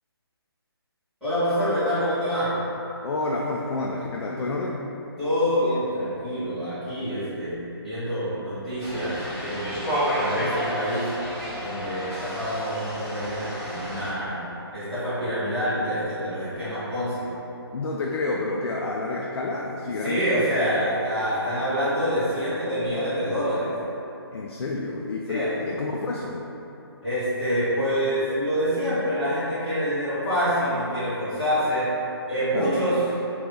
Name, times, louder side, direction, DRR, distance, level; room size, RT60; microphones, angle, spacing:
voice 1, 1.2-2.5 5.2-7.6 7.8-9.8 10.1-11.1 11.5-14.4 14.7-17.2 20.0-23.7 25.3-25.5 27.0-31.8 32.3-33.0, equal, ahead, -20 dB, 1.5 m, -26 dB
voice 2, 3.0-4.9 17.7-20.3 24.3-26.5 32.5-32.7, left 3 dB, 85° left, -2 dB, 0.4 m, -29 dB
sound 1, 8.8-14.1, equal, 25° left, 1.2 m, -30 dB
2.9 x 2.4 x 3.7 m, 3.0 s
hypercardioid pair, 165°, 14 cm